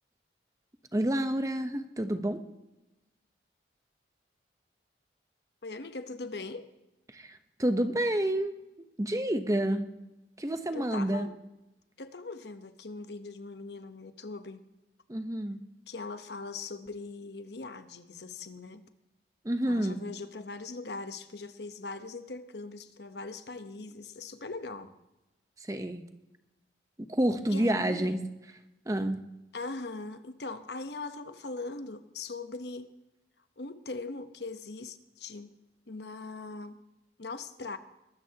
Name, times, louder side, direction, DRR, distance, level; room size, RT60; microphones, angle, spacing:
voice 1, 0.9-2.4 7.1-8.5 9.0-9.8 10.4-11.3 15.1-15.6 19.4-20.1 25.6-26.0 27.1-28.2 28.9-29.3, right 1 dB, 20° right, 8 dB, 0.9 m, -29 dB
voice 2, 5.6-6.7 10.7-11.4 12.0-14.6 15.9-18.8 19.7-24.9 27.5-28.2 29.5-32.9 33.6-35.5 35.9-36.8 37.2-37.8, left 3 dB, 70° left, 10 dB, 1.0 m, -40 dB
22.0 x 13.0 x 2.9 m, 0.96 s
head